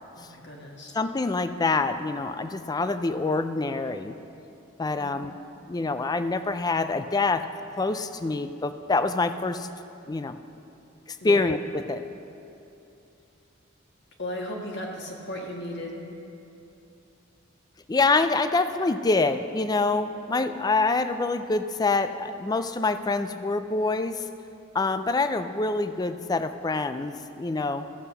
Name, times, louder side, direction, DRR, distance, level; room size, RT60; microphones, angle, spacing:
voice 1, 0.1-0.9 5.0-5.2 11.2-11.4 14.2-16.0, left 1 dB, 55° left, 0 dB, 1.6 m, -36 dB
voice 2, 0.9-4.2 4.8-5.3 5.7-7.4 7.8-9.7 10.1-10.4 11.1-12.0 17.9-24.2 24.7-27.9, left 3 dB, 20° left, 10 dB, 0.4 m, -26 dB
13.5 x 8.0 x 5.6 m, 2.8 s
head